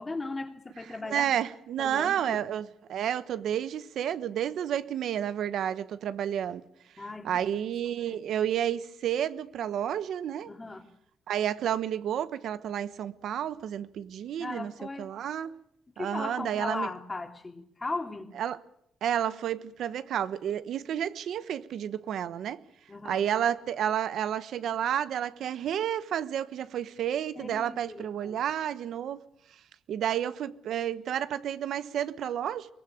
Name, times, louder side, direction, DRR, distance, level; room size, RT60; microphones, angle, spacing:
voice 1, 0.0-1.3 1.8-2.4 7.0-7.7 8.0-8.2 10.5-10.9 14.4-15.1 16.0-18.3 22.9-23.2 27.4-28.4, left 3 dB, 20° left, 2.9 m, -37 dB
voice 2, 1.1-6.6 7.2-10.5 11.3-14.7 15.0-15.5 16.0-16.9 18.4-18.6 19.0-22.6 23.0-29.2 29.9-32.7, right 10 dB, 80° right, 1.1 m, -31 dB
23.0 x 20.0 x 8.7 m
cardioid pair, 115°, 0 cm